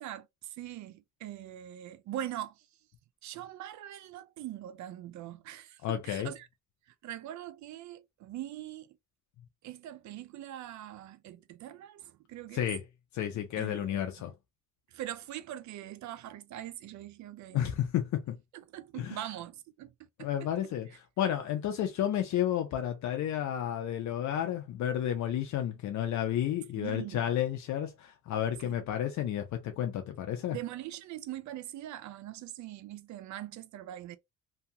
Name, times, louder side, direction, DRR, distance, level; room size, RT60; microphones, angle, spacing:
voice 1, 0.0-2.6 3.2-6.5 7.0-8.9 9.6-12.6 13.6-14.0 14.9-17.6 18.5-19.9 20.2-20.3 26.7-27.3 28.6-28.8 30.5-34.2, right 12 dB, 70° right, 0.5 m, -42 dB
voice 2, 5.8-6.3 12.5-12.8 13.1-14.3 17.5-18.4 19.0-19.2 20.2-30.6, left 10 dB, 70° left, 0.5 m, -31 dB
2.7 x 2.3 x 2.8 m
cardioid pair, 90°, 30 cm